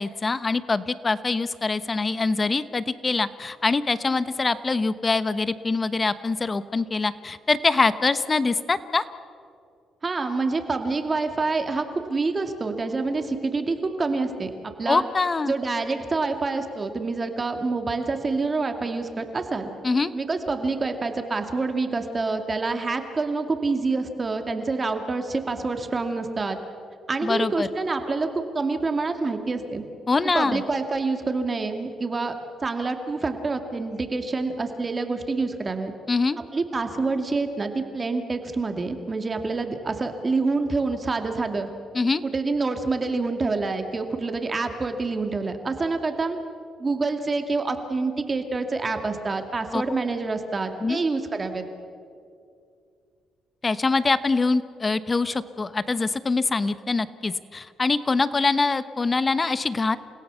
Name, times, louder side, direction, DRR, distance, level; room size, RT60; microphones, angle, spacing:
voice 1, 0.0-9.0 14.9-15.5 19.8-20.1 27.2-27.7 30.1-30.6 36.1-36.4 41.9-42.2 49.7-49.8 50.8-51.0 53.6-60.0, left 3 dB, 30° left, 14 dB, 1.0 m, -24 dB
voice 2, 10.0-14.5 14.8-15.0 15.5-19.7 20.1-26.6 27.1-29.8 30.3-32.3 32.6-35.9 36.5-41.7 42.2-46.4 46.8-51.6, right 3 dB, 30° right, 6 dB, 2.3 m, -27 dB
29.5 x 16.5 x 7.0 m, 2.4 s
cardioid pair, 90°, 0 cm